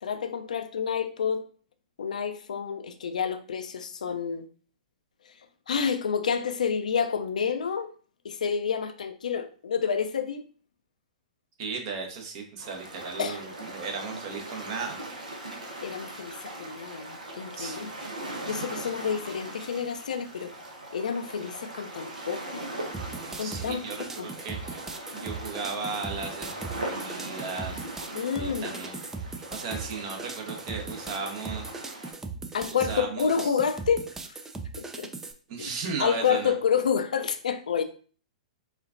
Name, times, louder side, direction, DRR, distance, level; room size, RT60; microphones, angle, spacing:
voice 1, 0.0-1.4 2.0-4.5 5.3-5.4 5.7-7.9 8.2-10.4 13.2-13.4 15.8-17.9 18.5-20.5 20.9-22.6 23.4-24.3 28.1-28.7 32.5-34.1 34.8-35.1 35.6-35.7 36.0-37.8, left 7 dB, 75° left, 0.5 m, -29 dB
voice 2, 11.6-15.0 17.6-17.9 18.8-19.0 23.4-24.8 25.1-27.9 28.4-29.0 29.5-31.7 32.7-33.5 35.5-36.5, right 4 dB, 45° right, 1.0 m, -36 dB
sound 1, 12.6-32.1, right 1 dB, 80° right, 1.0 m, -40 dB
sound 2, 22.9-35.3, right 4 dB, 10° right, 0.4 m, -39 dB
4.4 x 2.4 x 2.5 m
hypercardioid pair, 115°, 4 cm